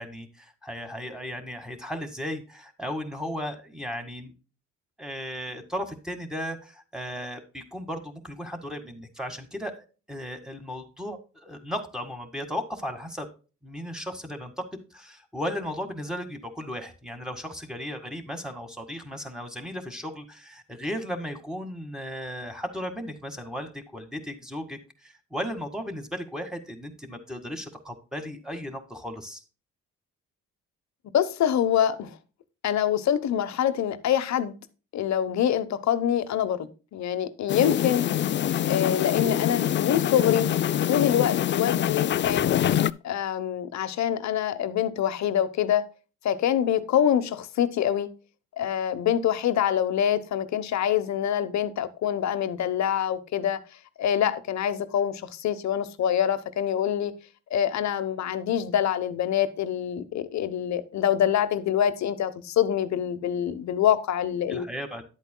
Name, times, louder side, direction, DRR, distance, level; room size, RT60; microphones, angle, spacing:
voice 1, 0.0-4.3 5.0-13.3 13.6-29.4 64.5-65.1, equal, ahead, 4 dB, 1.8 m, -35 dB
voice 2, 31.1-32.2 32.6-34.5 34.9-38.0 38.6-40.5 40.9-42.6 43.0-45.9 46.2-48.1 48.6-53.6 54.0-57.1 57.5-64.7, left 10 dB, 65° left, 11 dB, 1.0 m, -25 dB
sound 1, 37.5-42.9, left 10 dB, 40° left, 0.4 m, -25 dB
10.5 x 8.3 x 2.2 m, 0.34 s
cardioid pair, 90°, 30 cm